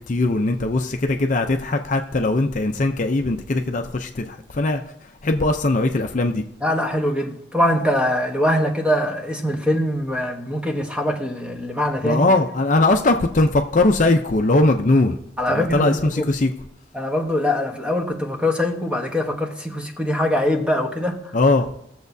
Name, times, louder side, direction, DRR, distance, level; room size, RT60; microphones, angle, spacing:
voice 1, 0.0-4.8 5.2-6.4 12.0-15.2 15.5-16.5 21.3-21.7, left 2 dB, 40° left, 0.5 m, -20 dB
voice 2, 6.6-12.4 15.4-16.3 16.9-21.3, left 1 dB, 5° right, 1.0 m, -23 dB
19.0 x 7.1 x 2.7 m
head